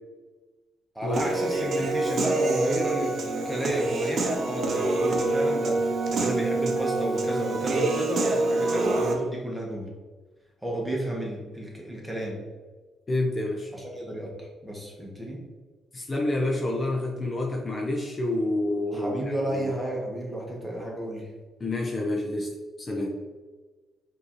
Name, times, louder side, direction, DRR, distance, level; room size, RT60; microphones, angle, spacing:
voice 1, 0.9-9.9 10.6-12.4 13.7-15.4 18.9-21.3, right 1 dB, 10° right, -2 dB, 1.2 m, -32 dB
Human voice / Piano, 1.1-9.1, right 2 dB, 55° right, 0.6 m, -26 dB
voice 2, 13.1-13.7 15.9-19.7 21.6-22.5 22.8-23.2, left 2 dB, 30° left, 0 dB, 0.6 m, -28 dB
5.1 x 2.7 x 3.0 m, 1.3 s
cardioid pair, 90°, 0 cm